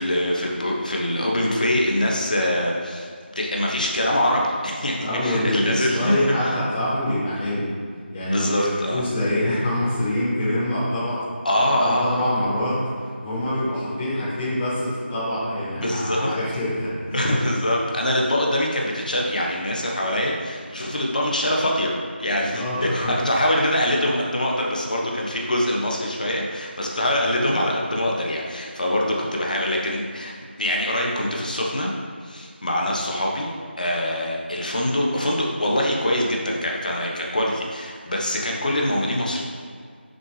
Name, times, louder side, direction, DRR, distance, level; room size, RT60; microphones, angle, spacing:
voice 1, 0.0-6.1 6.4-6.5 8.2-9.0 11.4-12.2 15.7-16.3 17.1-30.3 30.6-31.9 32.2-39.4, left 1 dB, 45° left, -1 dB, 1.4 m, -24 dB
voice 2, 5.0-7.7 8.1-11.2 11.5-17.2 22.5-23.1, left 1 dB, 20° left, -14 dB, 1.8 m, -25 dB
9.0 x 6.6 x 3.3 m, 2.1 s
figure-of-eight pair, 175°, 6 cm